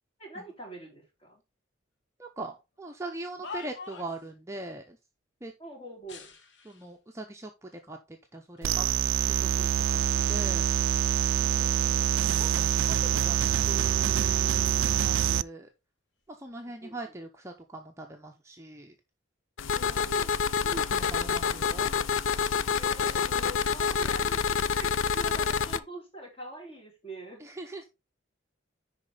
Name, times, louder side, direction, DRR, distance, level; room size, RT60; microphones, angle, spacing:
voice 1, 0.2-1.4 5.6-6.3 16.6-17.2 19.7-20.4 22.8-27.4, right 1 dB, 30° left, 3.8 m, -44 dB
voice 2, 2.2-5.0 5.4-5.5 6.6-8.9 9.2-9.7 9.9-10.7 12.4-15.7 16.3-18.9 20.7-21.9 27.4-27.8, right 2 dB, 15° right, 0.7 m, -41 dB
sound 1, 3.0-4.3 6.0-7.0 7.7-7.8 8.6-9.2 9.7-11.1 11.5-13.2 13.4-15.6 16.3-16.6, left 5 dB, 65° left, 1.2 m, -49 dB
sound 2, 8.6-15.4, right 10 dB, 85° right, 0.3 m, -25 dB
sound 3, 19.6-25.8, left 6 dB, 90° left, 0.5 m, -27 dB
10.5 x 4.3 x 3.9 m
head